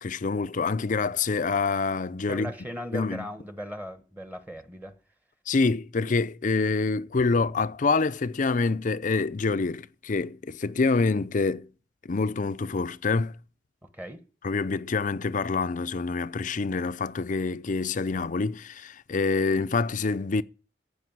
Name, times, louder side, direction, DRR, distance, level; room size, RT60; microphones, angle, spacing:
voice 1, 0.0-2.5 2.9-3.3 5.5-11.7 12.0-13.3 14.4-20.4, left 4 dB, 45° left, 0.5 m, -26 dB
voice 2, 2.3-4.9 13.8-14.2, equal, 10° right, 1.2 m, -38 dB
14.5 x 5.4 x 9.4 m
head